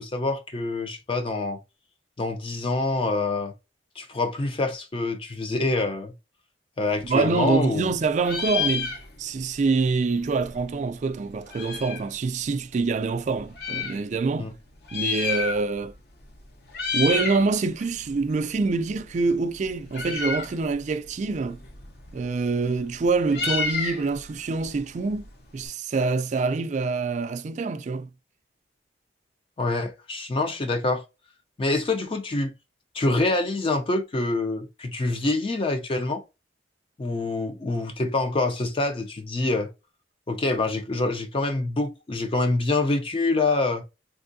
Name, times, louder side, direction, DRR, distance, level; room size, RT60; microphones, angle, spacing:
voice 1, 0.0-1.6 2.2-3.5 4.0-6.1 6.8-7.9 14.4-14.5 29.6-31.0 31.6-32.5 32.9-36.2 37.0-39.7 40.3-43.8, left 2 dB, 30° left, 0.4 m, -26 dB
Meow, 6.9-7.9 8.2-9.5 9.7-9.8 10.0-12.1 12.8-14.0 14.7-15.9 16.2-16.4 16.7-17.5 17.8-25.7, left 5 dB, 60° left, 0.8 m, -31 dB
voice 2, 7.0-14.5 14.9-15.9 16.9-21.6 22.1-28.1, right 4 dB, 40° right, 0.3 m, -25 dB
3.4 x 2.6 x 2.6 m
head